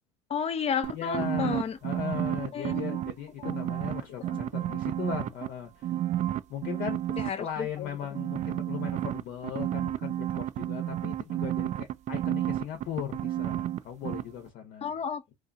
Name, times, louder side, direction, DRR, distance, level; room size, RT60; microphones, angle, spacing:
voice 1, 0.3-1.8 2.5-3.1 3.4-3.6 4.3-4.4 4.7-4.8 7.2-7.9 14.8-15.4, left 7 dB, 40° left, 0.7 m, -33 dB
sound 1, 0.8-3.1 3.4-5.5 5.8-7.3 8.1-13.8 14.0-14.2, right 12 dB, 45° right, 0.4 m, -31 dB
voice 2, 0.9-6.0 6.5-7.0 7.4-14.9, left 8 dB, 65° left, 1.0 m, -38 dB
2.7 x 2.3 x 2.6 m
supercardioid pair, 80°, 16 cm